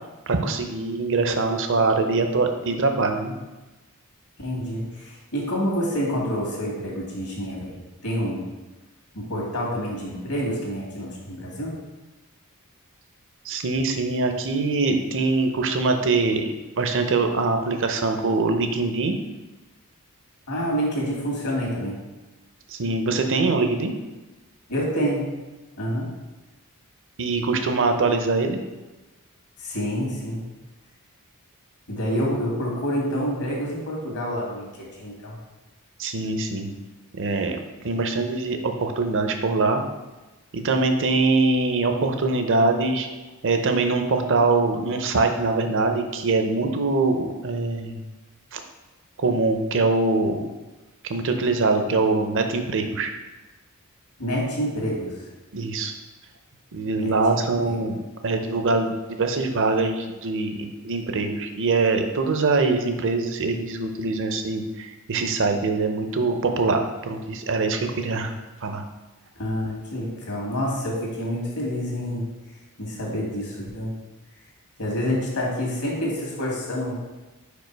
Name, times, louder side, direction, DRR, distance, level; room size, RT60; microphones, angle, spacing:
voice 1, 0.3-3.3 13.4-16.5 16.8-19.1 22.7-23.9 27.2-28.6 32.0-32.2 36.0-36.7 37.1-37.6 37.8-39.8 40.5-43.1 43.4-48.0 48.5-48.6 49.2-50.5 51.0-53.1 55.5-55.9 56.7-58.0 58.2-68.3 68.6-68.8, right 3 dB, 60° right, 6 dB, 0.7 m, -23 dB
voice 2, 4.4-7.8 8.0-8.5 9.1-11.8 20.5-22.0 24.7-25.4 25.8-26.1 29.6-30.4 31.9-35.4 54.2-55.2 56.9-57.8 69.4-72.3 72.8-73.9 74.8-77.0, equal, 80° left, -2 dB, 2.1 m, -28 dB
5.2 x 4.8 x 4.6 m, 1.1 s
head